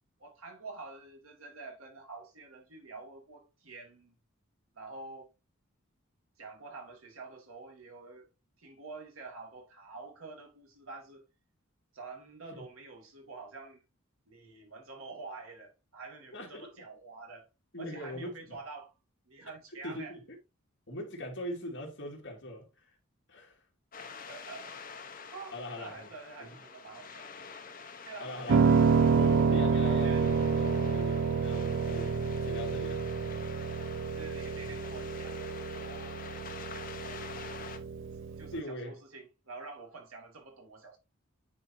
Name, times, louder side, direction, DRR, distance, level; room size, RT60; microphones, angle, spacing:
voice 1, 0.2-4.1 4.7-5.3 6.4-8.3 8.6-11.2 11.9-13.8 14.3-17.5 17.8-18.9 19.3-20.1 24.2-27.3 28.0-28.8 29.7-30.3 33.0-33.1 33.8-37.8 38.4-41.0, right 3 dB, 80° right, 2.2 m, -48 dB
voice 2, 16.3-16.7 17.7-18.6 19.8-20.4 20.9-22.9 23.3-23.6 25.5-26.1 26.4-26.6 28.2-28.7 29.1-33.1 34.5-34.8 38.5-39.0, left 1 dB, 60° left, 2.3 m, -41 dB
sound 1, 23.9-37.8, left 5 dB, 40° left, 0.9 m, -47 dB
Piano, 28.5-38.6, right 5 dB, 60° right, 0.4 m, -28 dB
9.6 x 4.2 x 2.7 m
head